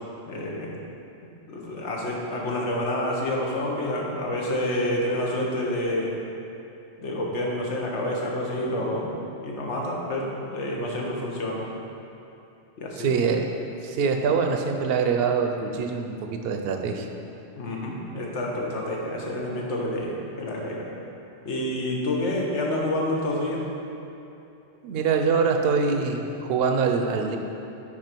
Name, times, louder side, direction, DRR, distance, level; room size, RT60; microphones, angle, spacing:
voice 1, 0.3-0.7 1.5-6.1 7.0-9.2 9.4-11.7 12.8-13.1 17.6-20.9 21.4-23.6, left 1 dB, 80° left, -2 dB, 1.3 m, -28 dB
voice 2, 13.0-13.5 13.8-17.1 24.8-27.4, right 5 dB, 65° right, 5 dB, 0.7 m, -24 dB
6.1 x 4.6 x 4.5 m, 2.8 s
omnidirectional pair, 1.2 m